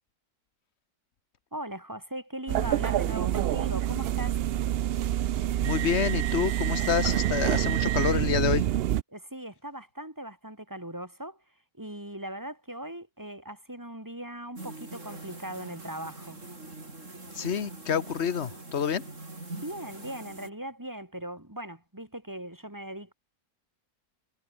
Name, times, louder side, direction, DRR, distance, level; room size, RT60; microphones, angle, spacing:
voice 1, 1.5-4.4 9.1-11.4 11.8-16.4 19.5-23.1, right 1 dB, 10° right, 3.3 m, -39 dB
sound 1, 2.5-9.0, right 12 dB, 90° right, 0.5 m, -27 dB
voice 2, 5.6-8.7 17.3-19.1, left 8 dB, 50° left, 1.3 m, -28 dB
sound 2, 14.6-20.5, right 2 dB, 50° right, 5.0 m, -43 dB
omnidirectional pair, 1.6 m